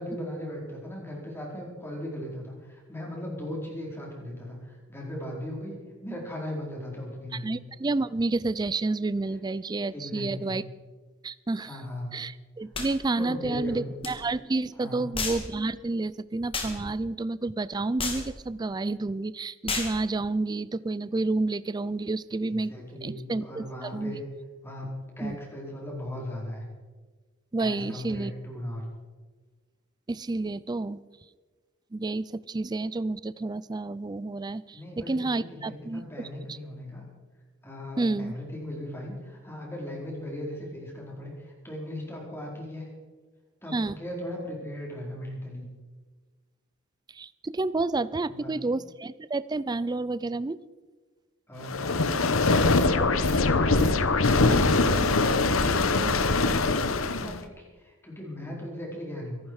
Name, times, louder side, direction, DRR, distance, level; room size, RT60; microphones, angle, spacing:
voice 1, 0.0-5.8 6.0-7.6 9.9-10.6 11.6-12.2 13.2-13.9 14.8-15.1 22.5-24.2 24.6-26.6 27.6-28.9 34.7-37.1 37.6-42.9 43.6-45.7 48.3-48.7 51.5-59.4, left 1 dB, 10° left, -2 dB, 4.7 m, -38 dB
voice 2, 7.3-10.6 11.2-11.8 12.1-22.7 23.0-24.2 25.2-25.4 27.5-28.3 30.1-31.0 31.9-36.6 38.0-38.3 43.7-44.0 47.1-50.6, right 2 dB, 20° right, 18 dB, 0.4 m, -30 dB
sound 1, 12.7-12.9 14.0-14.1 15.1-15.5 16.5-16.8 18.0-18.3 19.7-20.0, left 4 dB, 25° left, 2.5 m, -31 dB
sound 2, 51.6-57.4, left 3 dB, 85° left, 1.0 m, -23 dB
24.0 x 12.0 x 4.9 m, 1.4 s
head